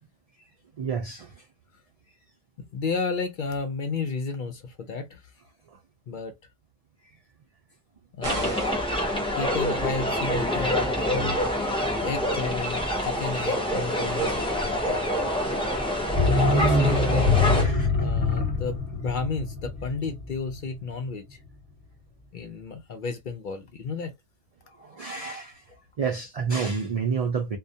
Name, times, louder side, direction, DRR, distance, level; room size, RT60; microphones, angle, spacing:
voice 1, 0.8-1.3 17.6-17.9 24.8-25.6 26.0-27.6, right 5 dB, 70° right, 0.3 m, -29 dB
voice 2, 2.6-5.2 6.1-6.3 8.2-8.6 9.4-11.4 12.0-15.0 16.2-21.4 22.3-24.1 24.7-25.1, left 4 dB, 60° left, 0.6 m, -33 dB
sound 1, 8.2-17.6, left 1 dB, 5° left, 0.5 m, -26 dB
sound 2, 8.2-9.0, right 2 dB, 35° right, 0.7 m, -35 dB
sound 3, 16.1-20.8 21.1-21.2, left 3 dB, 10° right, 0.9 m, -24 dB
2.2 x 2.1 x 2.7 m
omnidirectional pair, 1.2 m